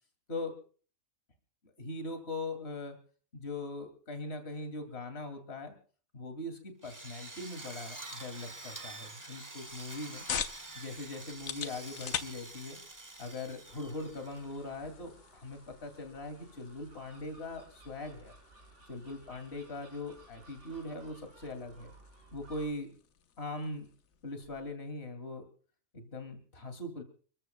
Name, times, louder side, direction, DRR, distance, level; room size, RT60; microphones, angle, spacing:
voice 1, 1.8-3.0 3.3-5.8 6.1-10.2 10.7-12.8 13.2-18.3 18.9-21.9 22.3-23.0 23.4-23.9 24.2-25.4 25.9-27.0, left 2 dB, 50° left, 6 dB, 2.9 m, -41 dB
Drill, 6.8-14.7, right 2 dB, 15° right, 1.0 m, -47 dB
sound 1, 9.6-24.8, left 8 dB, 80° left, 1.4 m, -46 dB
Gull seagull, 13.6-22.7, right 2 dB, 60° right, 4.7 m, -58 dB
30.0 x 14.5 x 2.3 m, 0.41 s
omnidirectional pair, 1.4 m